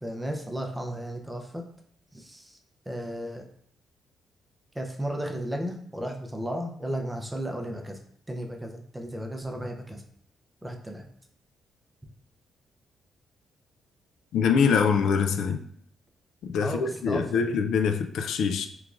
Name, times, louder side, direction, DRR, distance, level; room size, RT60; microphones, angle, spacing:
voice 1, 0.0-1.6 2.1-2.6 2.9-3.4 4.8-8.0 8.3-10.0 10.6-11.1 16.6-17.4, equal, 10° right, 0.5 m, -34 dB
voice 2, 14.3-15.6 16.4-18.7, left 6 dB, 80° left, 0.3 m, -24 dB
3.6 x 3.1 x 2.4 m
cardioid pair, 125°, 0 cm